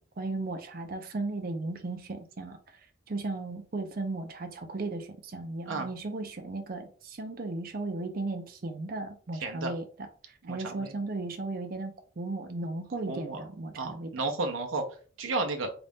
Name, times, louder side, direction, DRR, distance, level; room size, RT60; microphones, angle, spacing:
voice 1, 0.2-2.8 3.1-9.8 10.5-14.1, right 2 dB, 45° right, 0.5 m, -36 dB
voice 2, 9.4-9.7 10.4-10.9 13.1-13.4 13.8-14.8 15.2-15.7, right 3 dB, 90° right, 0.7 m, -32 dB
3.9 x 2.4 x 3.5 m
head